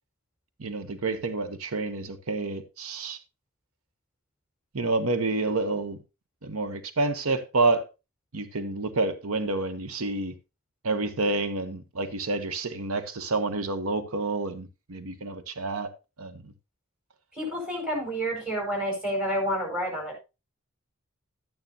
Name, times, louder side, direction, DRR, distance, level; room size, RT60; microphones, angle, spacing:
voice 1, 0.6-3.2 4.7-6.0 6.4-7.9 8.3-10.3 10.8-15.9 16.2-16.5, right 3 dB, 90° right, 1.0 m, -28 dB
voice 2, 17.3-20.2, equal, 5° right, 4.7 m, -29 dB
12.0 x 9.3 x 2.8 m
head